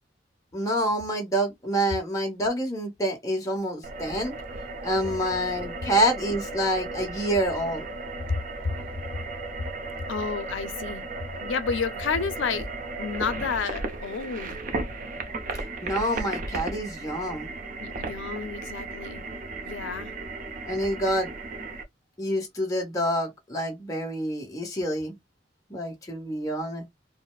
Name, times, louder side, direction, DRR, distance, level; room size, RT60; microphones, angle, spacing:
voice 1, 0.5-4.3 4.8-7.9 15.8-17.5 20.6-21.3 22.2-25.2 25.7-26.8, equal, 20° left, 1.0 m, -27 dB
sound 1, 3.8-21.8, right 3 dB, 45° right, 0.6 m, -35 dB
voice 2, 10.1-11.0 11.3-12.7 13.0-14.6 17.8-19.2 19.6-20.1, left 5 dB, 85° left, 0.5 m, -30 dB
4.0 x 2.0 x 2.4 m
head